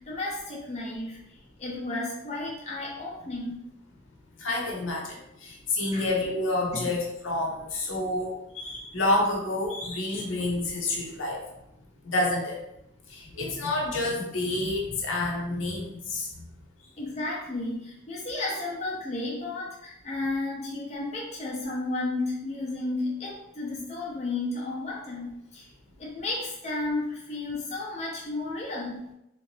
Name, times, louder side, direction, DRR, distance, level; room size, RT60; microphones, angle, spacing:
voice 1, 0.0-3.6 5.9-6.1 6.7-6.9 17.0-25.7 26.0-29.0, left 2 dB, 30° left, -5 dB, 0.7 m, -33 dB
voice 2, 4.4-11.4 12.0-12.6 13.1-16.4, left 2 dB, 75° left, -2 dB, 0.9 m, -29 dB
3.4 x 2.8 x 3.2 m, 0.83 s
head